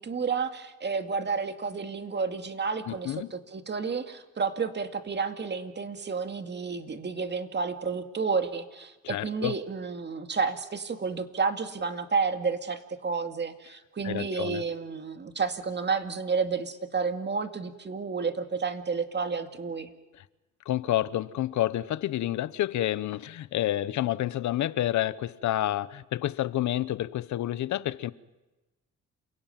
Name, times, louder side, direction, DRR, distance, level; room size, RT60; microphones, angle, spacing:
voice 1, 0.0-19.9, right 5 dB, 35° right, 2.2 m, -31 dB
voice 2, 2.9-3.3 9.1-9.5 14.0-14.6 20.7-28.1, left 13 dB, 70° left, 0.9 m, -29 dB
28.0 x 17.0 x 9.1 m
cardioid pair, 90°, 30 cm